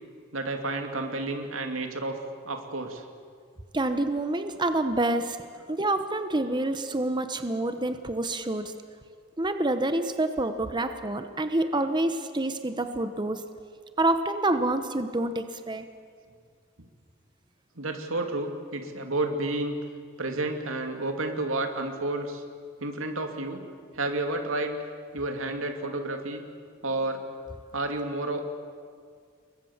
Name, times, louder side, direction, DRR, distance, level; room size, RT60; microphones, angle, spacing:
voice 1, 0.3-2.2 2.5-3.0 17.8-19.8 20.2-22.4 22.8-23.6 23.9-24.8 25.1-26.4 26.8-27.2 27.7-28.5, right 2 dB, 90° right, 5 dB, 2.7 m, -30 dB
voice 2, 3.7-5.4 5.7-8.7 9.4-13.4 14.0-15.9, right 2 dB, 20° right, 8 dB, 1.0 m, -27 dB
29.0 x 22.5 x 7.3 m, 2.1 s
head